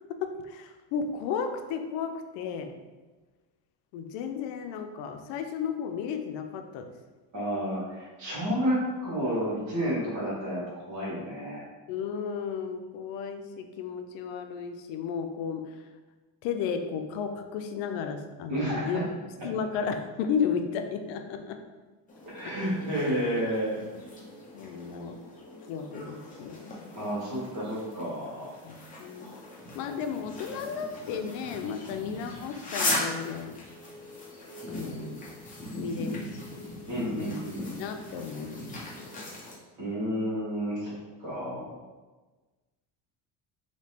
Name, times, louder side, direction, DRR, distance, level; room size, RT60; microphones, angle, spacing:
voice 1, 0.1-2.7 3.9-6.9 11.9-15.8 16.4-19.1 19.4-21.6 22.4-22.5 23.8-23.9 24.5-25.2 25.7-26.7 28.6-29.4 29.7-33.6 34.7-35.2 35.8-36.2 37.1-37.3 37.8-39.1 41.4-41.7, left 6 dB, 85° left, 6 dB, 0.5 m, -34 dB
voice 2, 7.3-11.6 18.5-19.0 22.3-23.8 26.9-28.5 36.9-37.9 39.8-41.8, equal, 40° right, -8 dB, 1.3 m, -31 dB
sound 1, 22.1-39.5, left 1 dB, 20° left, 0.7 m, -39 dB
3.3 x 2.9 x 2.8 m, 1.3 s
cardioid pair, 145°, 44 cm